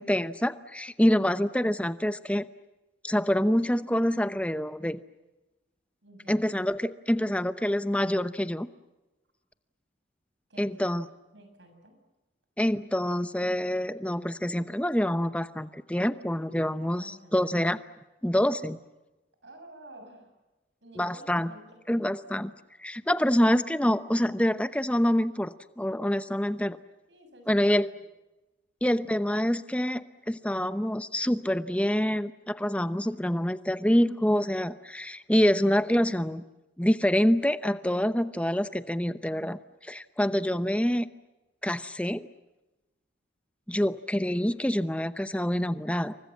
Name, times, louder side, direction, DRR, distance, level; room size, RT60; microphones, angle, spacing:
voice 1, 0.0-2.4 3.0-5.0 6.3-8.7 10.6-11.1 12.6-17.8 18.2-18.8 21.0-21.5 21.9-22.5 22.8-26.8 27.5-27.9 28.8-36.4 36.8-41.1 41.6-42.2 43.7-46.1, equal, 5° left, 12 dB, 0.8 m, -26 dB
voice 2, 6.0-6.5 10.5-12.0 16.9-17.5 19.4-20.3 20.8-22.0 27.1-28.0, right 1 dB, 90° right, 6 dB, 7.0 m, -51 dB
28.5 x 24.5 x 7.3 m, 1.1 s
head